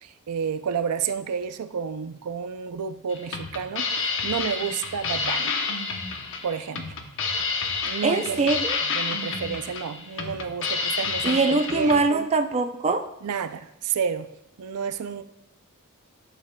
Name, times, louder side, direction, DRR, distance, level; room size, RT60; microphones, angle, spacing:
voice 1, 0.0-5.5 6.4-6.9 7.8-8.5 8.9-12.3 13.2-14.3 14.6-15.2, right 7 dB, 85° right, 10 dB, 0.4 m, -30 dB
sound 1, 3.1-12.0, left 4 dB, 60° left, 0.9 m, -29 dB
voice 2, 8.0-8.8 11.2-13.0, right 3 dB, 30° right, 7 dB, 0.4 m, -22 dB
12.0 x 7.1 x 2.2 m, 0.85 s
head